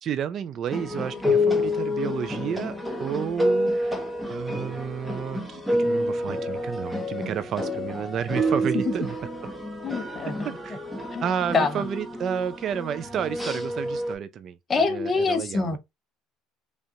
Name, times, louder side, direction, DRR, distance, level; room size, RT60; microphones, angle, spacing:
voice 1, 0.0-4.0 4.3-9.2 10.4-10.8 11.2-15.8, right 8 dB, 45° right, 0.4 m, -31 dB
sound 1, 0.7-14.1, left 1 dB, ahead, 1.0 m, -28 dB
voice 2, 9.8-10.5 11.1-11.3 11.5-11.8 14.7-15.8, left 4 dB, 30° left, 0.9 m, -25 dB
5.1 x 2.4 x 2.7 m
supercardioid pair, 115°, 0 cm